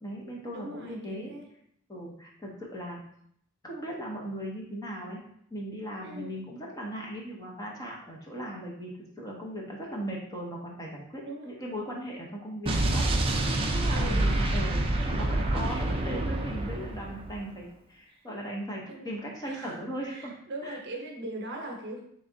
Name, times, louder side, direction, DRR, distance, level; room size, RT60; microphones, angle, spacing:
voice 1, 0.0-1.3 1.9-3.0 3.6-5.2 5.5-13.2 13.7-20.3 20.6-20.8, equal, 15° left, -2 dB, 0.7 m, -38 dB
voice 2, 0.5-1.4 6.0-6.3 11.2-11.5 13.6-14.3 18.9-19.1 19.4-19.8 20.1-22.0, right 1 dB, 50° right, 1 dB, 0.8 m, -40 dB
Explosion, 12.7-17.4, right 1 dB, 25° right, 0.4 m, -27 dB
3.6 x 3.1 x 3.8 m, 0.70 s
head